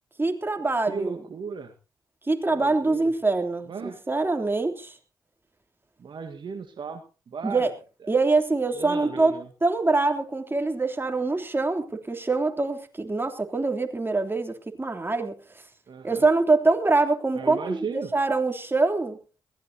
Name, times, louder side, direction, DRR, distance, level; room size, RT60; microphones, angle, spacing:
voice 1, 0.2-1.2 2.3-4.9 7.4-7.7 8.1-9.3 9.6-15.3 16.0-19.2, right 3 dB, 25° right, 5 dB, 3.3 m, -24 dB
voice 2, 0.9-1.7 2.6-3.1 3.7-4.0 6.0-7.7 8.0-8.1 8.7-9.5 15.9-16.2 17.4-18.1, right 5 dB, 60° right, 7 dB, 1.6 m, -36 dB
21.5 x 16.5 x 2.9 m, 0.34 s
hypercardioid pair, 40°, 9 cm